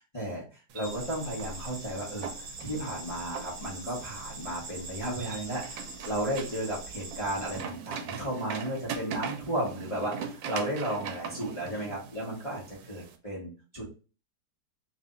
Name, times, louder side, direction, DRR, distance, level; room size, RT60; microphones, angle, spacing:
voice 1, 0.1-2.3 2.6-13.8, right 1 dB, 20° left, -6 dB, 1.1 m, -34 dB
sound 1, 0.7-13.2, right 6 dB, 80° right, 1.3 m, -42 dB
sound 2, 0.8-7.6, right 2 dB, 55° right, 1.4 m, -43 dB
3.3 x 2.8 x 3.8 m, 0.35 s
omnidirectional pair, 2.0 m